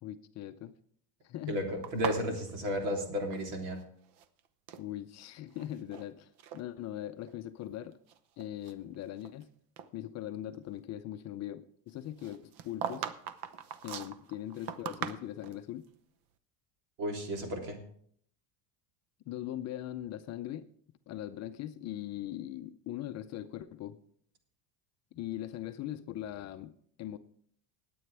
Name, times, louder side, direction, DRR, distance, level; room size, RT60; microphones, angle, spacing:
voice 1, 0.0-0.7 1.2-1.6 4.8-8.0 8.4-9.5 9.9-13.1 13.8-15.9 19.3-20.7 21.1-24.0 25.1-27.2, left 12 dB, 35° left, 9 dB, 0.6 m, -40 dB
voice 2, 1.5-3.8 17.0-17.8, equal, 75° right, 2 dB, 3.3 m, -33 dB
sound 1, 1.8-3.8 4.1-4.9 5.5-6.1 6.4-6.6 7.3-7.4 7.9-9.4 9.8-9.9 12.2-15.6, right 8 dB, 55° right, 0.9 m, -40 dB
20.5 x 8.6 x 3.3 m, 0.63 s
cardioid pair, 145°, 46 cm